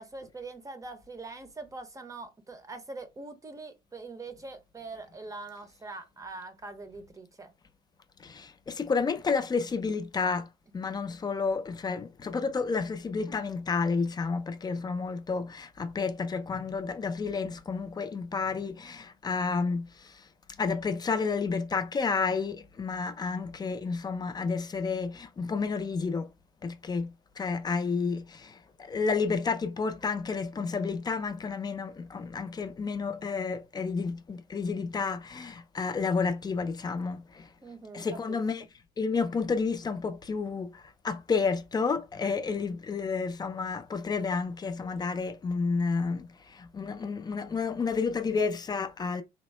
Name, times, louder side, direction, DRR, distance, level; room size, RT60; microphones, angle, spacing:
voice 1, 0.0-7.5 37.6-38.4, right 3 dB, 20° right, 0.7 m, -43 dB
voice 2, 8.2-26.3 26.6-37.5 37.9-38.7 39.0-49.2, left 4 dB, 25° left, 0.4 m, -31 dB
3.5 x 2.0 x 3.1 m
cardioid pair, 110°, 17 cm